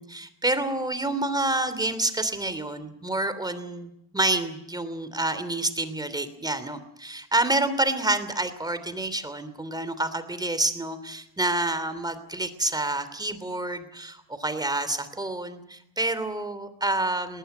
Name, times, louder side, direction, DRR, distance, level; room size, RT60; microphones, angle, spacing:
voice 1, 0.0-17.4, right 2 dB, 10° right, 12 dB, 3.0 m, -28 dB
20.0 x 19.0 x 9.1 m, 0.79 s
cardioid pair, 115°, 35 cm